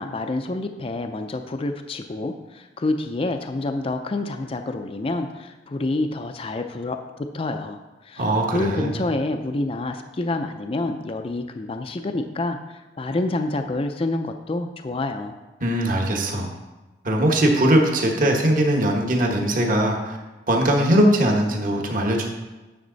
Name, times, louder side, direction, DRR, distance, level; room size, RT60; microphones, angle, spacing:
voice 1, 0.0-15.4, left 2 dB, 30° left, 6 dB, 0.4 m, -28 dB
voice 2, 8.2-8.9 15.6-16.5 17.0-20.2 20.5-22.2, right 1 dB, 45° right, 1 dB, 1.3 m, -20 dB
9.4 x 6.4 x 4.0 m, 1.1 s
head